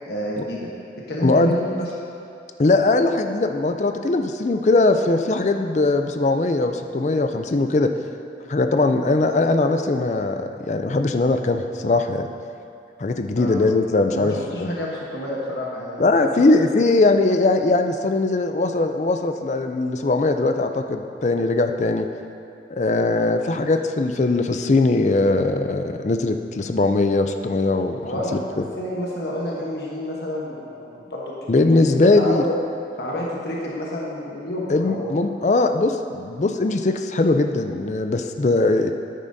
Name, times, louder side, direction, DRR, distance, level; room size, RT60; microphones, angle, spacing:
voice 1, 0.1-0.7 1.1-1.9 13.3-13.5 14.1-16.5 23.1-23.3 28.0-31.3 31.7-32.5 33.0-35.2, equal, 65° left, -4 dB, 1.1 m, -29 dB
voice 2, 1.2-1.5 2.6-7.9 8.5-12.3 13.0-14.3 14.6-14.7 16.0-22.1 22.7-28.0 31.5-32.4 34.7-38.9, left 2 dB, 40° left, 6 dB, 0.4 m, -20 dB
10.0 x 9.0 x 2.7 m, 2.6 s
head